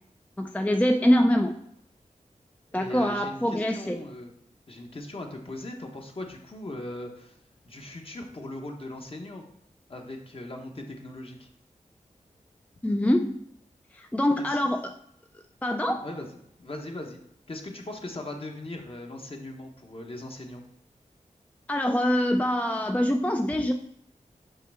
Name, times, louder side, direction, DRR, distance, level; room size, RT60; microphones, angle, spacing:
voice 1, 0.4-1.6 2.7-4.0 12.8-13.4 13.9-14.9 15.6-16.0 21.7-23.7, left 1 dB, 10° left, 5 dB, 0.4 m, -24 dB
voice 2, 2.7-4.3 4.7-7.4 7.6-9.4 9.9-11.5 14.5-14.6 16.0-16.3 16.6-17.2 17.5-20.6, left 1 dB, 45° left, 2 dB, 1.1 m, -39 dB
5.6 x 5.3 x 3.5 m, 0.75 s
wide cardioid pair, 75°, 14 cm